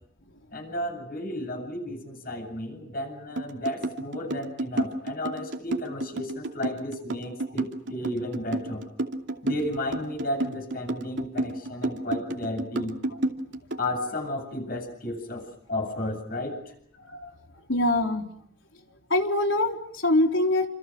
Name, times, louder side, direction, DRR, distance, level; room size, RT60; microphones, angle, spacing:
voice 1, 0.5-8.8 9.4-13.0 13.8-16.7, left 1 dB, 50° left, 5 dB, 8.0 m, -33 dB
sound 1, 3.4-13.9, right 1 dB, 70° right, 2.6 m, -30 dB
voice 2, 17.7-18.3 19.1-20.7, left 1 dB, 90° left, 3 dB, 4.0 m, -23 dB
29.5 x 28.0 x 6.4 m, 0.69 s
head